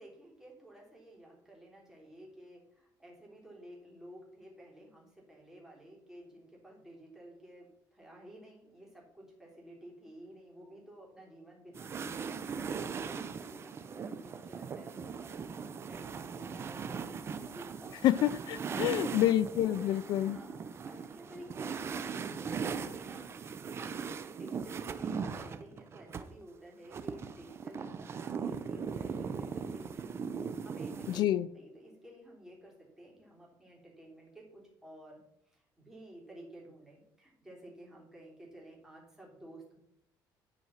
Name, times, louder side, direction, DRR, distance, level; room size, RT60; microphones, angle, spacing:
voice 1, 0.0-18.0 18.7-19.2 19.6-30.3 30.6-35.2 35.5-39.8, right 1 dB, 5° right, -3 dB, 3.3 m, -53 dB
sound 1, 11.7-26.2 26.9-31.2, right 6 dB, 35° right, 0.6 m, -39 dB
voice 2, 18.0-20.4 31.1-31.5, left 12 dB, 65° left, 15 dB, 0.4 m, -28 dB
11.0 x 4.8 x 5.7 m, 0.77 s
cardioid pair, 155°, 8 cm